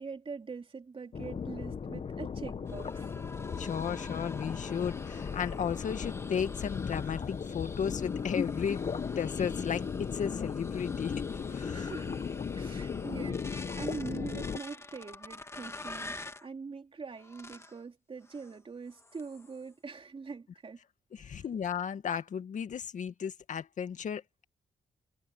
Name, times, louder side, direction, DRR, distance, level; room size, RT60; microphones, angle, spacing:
voice 1, 0.0-3.1 11.7-12.2 12.5-20.8 21.1-21.4, right 4 dB, 40° right, 3.0 m, -43 dB
sound 1, 1.1-14.6, left 6 dB, 45° left, 1.2 m, -36 dB
sound 2, 2.7-16.5 17.2-17.8 18.2-18.6 18.9-19.6, left 2 dB, 20° left, 1.9 m, -47 dB
voice 2, 3.6-9.9 10.1-11.9 21.1-24.4, left 7 dB, 65° left, 2.0 m, -35 dB
cardioid pair, 65°, 14 cm